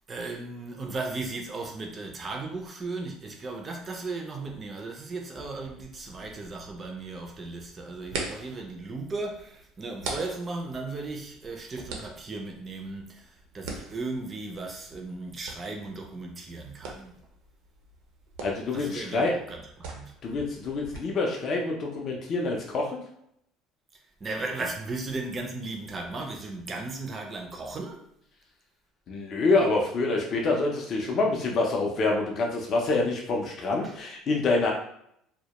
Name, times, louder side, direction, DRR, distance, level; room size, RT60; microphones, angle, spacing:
voice 1, 0.1-17.2 18.7-20.1 24.2-28.0 33.8-33.9, right 3 dB, 20° right, 0.4 m, -36 dB
sound 1, 5.5-21.0, right 3 dB, 80° right, 0.5 m, -43 dB
voice 2, 18.4-19.3 20.2-23.0 29.1-34.7, left 3 dB, 35° left, 0.4 m, -26 dB
2.2 x 2.1 x 2.8 m
cardioid pair, 155°, 0 cm